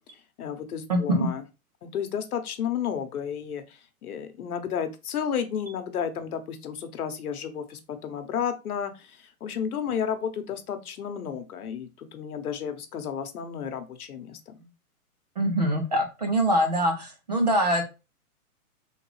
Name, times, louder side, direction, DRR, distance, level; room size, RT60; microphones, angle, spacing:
voice 1, 0.4-1.4 1.8-14.7, left 8 dB, 85° left, 8 dB, 1.0 m, -32 dB
voice 2, 0.9-1.3 15.4-17.8, right 1 dB, 30° right, 4 dB, 0.5 m, -24 dB
3.7 x 3.2 x 3.1 m, 0.28 s
hypercardioid pair, 175°, 44 cm